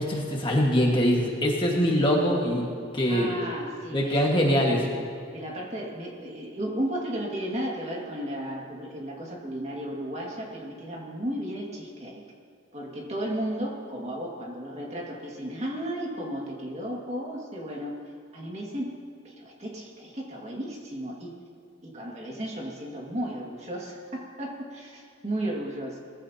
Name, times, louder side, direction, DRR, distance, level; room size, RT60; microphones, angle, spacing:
voice 1, 0.0-2.6 2.9-3.3 3.9-4.9, equal, 25° left, -1 dB, 1.6 m, -23 dB
voice 2, 3.1-4.1 5.3-12.2 12.7-17.9 18.3-18.9 19.2-21.3 21.8-26.0, right 1 dB, 30° right, -2 dB, 2.0 m, -34 dB
20.5 x 15.0 x 2.9 m, 2.3 s
head